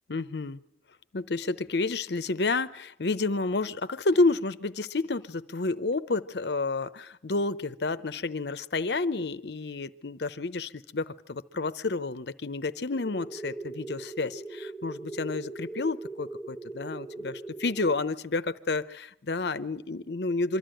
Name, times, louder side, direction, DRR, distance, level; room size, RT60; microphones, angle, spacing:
voice 1, 0.1-0.6 1.1-20.6, left 3 dB, 65° left, 14 dB, 0.7 m, -30 dB
sound 1, 12.9-17.9, right 2 dB, 15° right, 4.0 m, -40 dB
24.0 x 13.5 x 9.0 m, 0.76 s
head